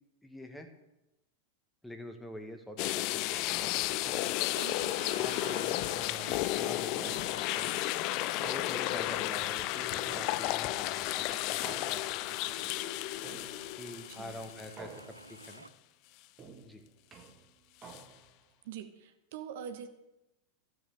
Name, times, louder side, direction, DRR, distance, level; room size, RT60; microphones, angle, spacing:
voice 1, 0.2-0.7 1.8-4.4 5.1-7.7 8.5-12.0 12.5-13.0 13.8-15.6 16.6-16.8, left 1 dB, 5° left, 6 dB, 1.6 m, -46 dB
sound 1, 2.8-15.0 15.4-15.5 17.9-18.0, left 17 dB, 40° left, 0.4 m, -33 dB
sound 2, 4.0-4.6 5.4-6.1 7.0-7.7 8.4-9.2 10.1-10.8 11.6-12.4 13.2-13.9 14.8-15.5 16.4-18.4, right 5 dB, 25° right, 1.6 m, -50 dB
voice 2, 4.4-5.1 14.1-14.4 18.6-19.9, right 8 dB, 55° right, 8 dB, 1.1 m, -44 dB
sound 3, 4.4-15.7, right 2 dB, 85° right, 0.5 m, -51 dB
13.5 x 8.0 x 7.1 m, 0.97 s
figure-of-eight pair, 90°, 0 cm